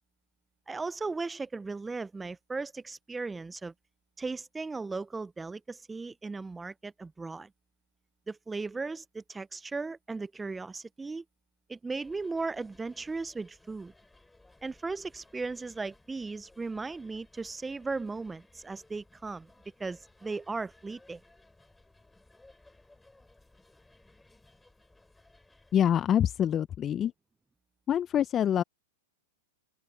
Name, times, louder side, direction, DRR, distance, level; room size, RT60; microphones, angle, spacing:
voice 1, 0.7-3.7 4.2-7.5 8.3-11.2 11.7-13.9 14.6-19.5 19.8-21.2, right 3 dB, 10° right, 0.6 m, -37 dB
sound 1, 12.0-26.1, left 2 dB, 5° left, 7.9 m, -61 dB
voice 2, 25.7-27.1 27.9-28.6, left 9 dB, 30° left, 0.7 m, -25 dB
open air
hypercardioid pair, 105°, 0 cm